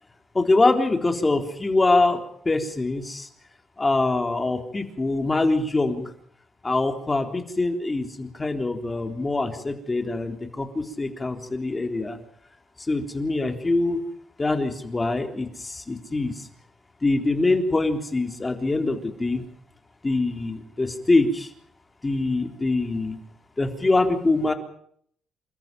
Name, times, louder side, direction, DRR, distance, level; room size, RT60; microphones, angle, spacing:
voice 1, 0.3-2.2 2.5-3.3 3.8-6.1 6.6-12.2 12.9-14.0 14.4-16.5 17.0-19.4 20.0-21.5 22.0-23.2 23.6-24.5, left 2 dB, 20° left, 6 dB, 3.7 m, -24 dB
29.0 x 13.5 x 9.1 m, 0.67 s
cardioid pair, 90°, 0 cm